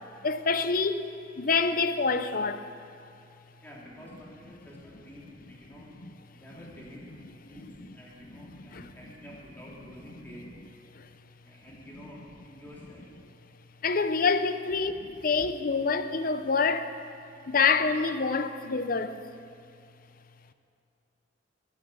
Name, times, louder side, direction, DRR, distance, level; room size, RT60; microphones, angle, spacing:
voice 1, 0.2-1.1 1.4-2.7 6.0-6.1 7.6-7.7 8.4-8.9 10.9-11.1 13.8-14.9 15.2-17.0 17.5-19.2, left 4 dB, 50° left, 0.7 m, -27 dB
voice 2, 3.6-5.9 6.3-10.4 11.4-13.1 14.7-14.8, equal, 10° left, 3.3 m, -49 dB
19.0 x 8.0 x 8.5 m
head